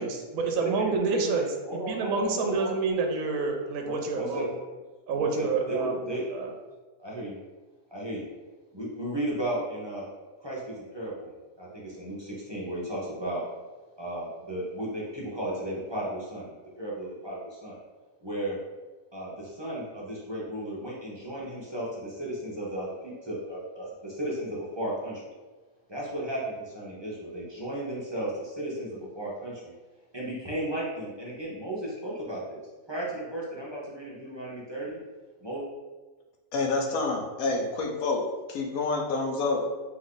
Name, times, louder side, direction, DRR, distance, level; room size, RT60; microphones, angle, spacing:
voice 1, 0.0-1.5 1.8-4.5 5.1-6.0 6.3-6.5, right 4 dB, 70° right, 2 dB, 1.0 m, -28 dB
voice 2, 0.6-2.8 3.8-4.4 5.1-6.2 7.0-7.4 7.9-8.2 8.7-10.1 10.4-11.3 11.6-13.4 14.0-16.5 16.8-17.8 18.2-18.6 19.1-25.2 25.9-29.7 30.1-32.6 32.9-35.0 35.4-35.6, right 1 dB, 25° right, -6 dB, 0.6 m, -34 dB
voice 3, 36.5-38.2 38.5-39.7, left 3 dB, 70° left, 1 dB, 1.1 m, -28 dB
3.6 x 3.1 x 3.8 m, 1.3 s
omnidirectional pair, 1.6 m